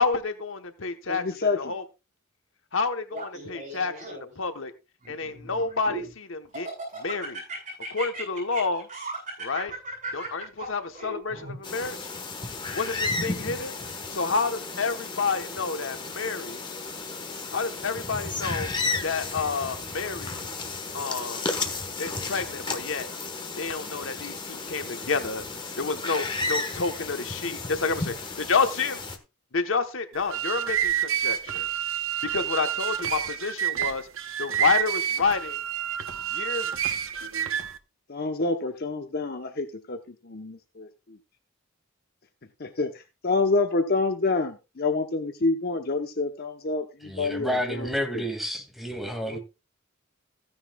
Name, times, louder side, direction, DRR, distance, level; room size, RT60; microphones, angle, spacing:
voice 1, 0.0-1.8 2.7-4.7 5.1-6.7 7.0-7.4 7.9-8.9 9.4-9.7 10.1-12.0 12.7-13.8 14.1-16.6 17.5-18.7 19.0-20.4 20.9-21.4 22.0-23.1 23.6-25.4 25.8-29.0 29.5-31.7 32.3-34.1 34.4-35.6 36.3-36.7, left 4 dB, 70° left, 1.1 m, -29 dB
voice 2, 1.1-1.6 38.1-41.2 42.6-48.2 49.3-49.4, left 3 dB, 50° left, 0.9 m, -28 dB
Laughter, 3.1-4.4 5.0-6.1 6.5-11.6, right 2 dB, 40° right, 7.9 m, -37 dB
sound 1, 11.6-29.2, left 3 dB, 25° left, 1.3 m, -33 dB
sound 2, 30.1-37.8, right 10 dB, 80° right, 0.9 m, -28 dB
voice 3, 47.0-49.4, equal, ahead, 2.3 m, -30 dB
15.5 x 9.8 x 2.3 m
head